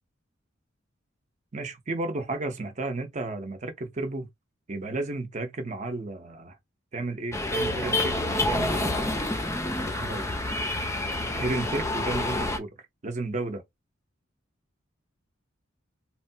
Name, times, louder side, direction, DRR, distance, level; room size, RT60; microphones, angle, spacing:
voice 1, 1.5-4.3 4.7-6.6 6.9-9.3 9.9-10.3 11.3-12.7 13.0-13.6, right 2 dB, 35° right, 0.7 m, -33 dB
sound 1, 7.3-12.6, left 2 dB, 15° left, 0.5 m, -28 dB
3.1 x 2.2 x 2.7 m
head